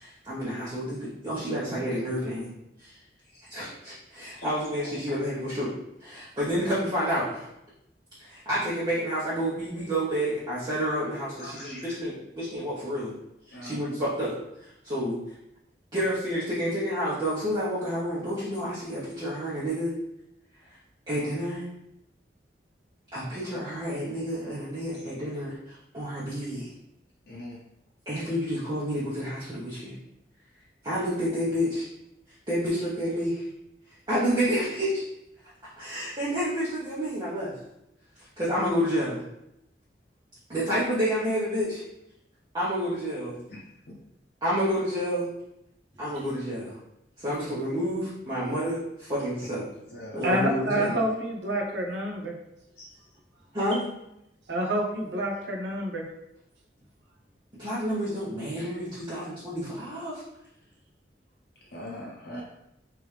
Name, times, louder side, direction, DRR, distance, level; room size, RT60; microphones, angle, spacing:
voice 1, 0.0-2.5 2.8-3.0 3.5-5.7 6.0-7.5 8.2-13.1 13.5-15.4 15.9-19.9 20.7-20.8 21.1-21.7 23.1-26.7 28.0-30.0 30.8-31.9 32.3-33.5 33.9-35.0 35.4-37.6 38.2-39.2 40.5-41.8 42.5-43.4 44.4-45.3 46.0-46.8 47.2-49.7 50.1-51.0 53.5-53.8 57.5-60.2, equal, 25° right, -10 dB, 1.0 m, -29 dB
voice 2, 11.4-11.8 13.5-13.8 27.3-27.6 49.9-50.2 52.8-52.9 59.1-59.3 61.6-62.4, left 1 dB, 60° left, -5 dB, 0.7 m, -41 dB
voice 3, 50.2-52.4 54.5-56.0, right 1 dB, 85° right, -1 dB, 0.9 m, -28 dB
3.4 x 3.3 x 3.3 m, 0.83 s
head